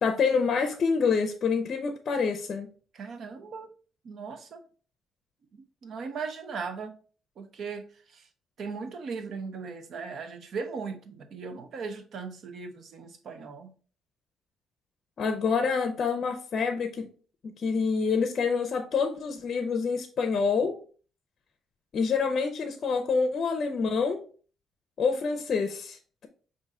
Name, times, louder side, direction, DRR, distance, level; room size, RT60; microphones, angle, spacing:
voice 1, 0.0-2.7 15.2-17.1 17.4-20.8 21.9-24.2 25.0-26.3, left 5 dB, 50° left, 0.5 m, -27 dB
voice 2, 2.9-3.7 4.0-4.6 5.5-7.0 7.4-8.3 8.6-13.7, right 5 dB, 60° right, 0.7 m, -38 dB
5.4 x 2.6 x 3.6 m
cardioid pair, 120°, 0 cm